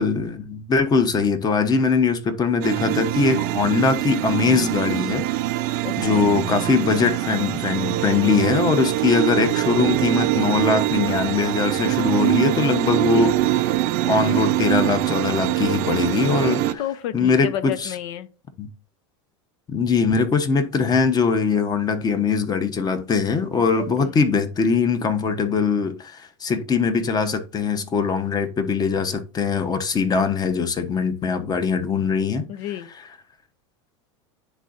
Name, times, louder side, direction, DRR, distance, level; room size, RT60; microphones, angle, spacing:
voice 1, 0.0-5.3 5.5-13.4 13.7-13.8 14.0-16.8 17.1-17.9 18.6-18.7 19.7-32.5, left 5 dB, 25° left, 1.0 m, -21 dB
sound 1, 2.6-16.7, right 15 dB, 60° right, 0.6 m, -23 dB
voice 2, 5.8-6.3 12.9-13.3 16.8-18.3 23.8-24.2 32.5-32.9, left 11 dB, 65° left, 0.9 m, -31 dB
10.0 x 3.8 x 2.6 m
supercardioid pair, 115°, 15 cm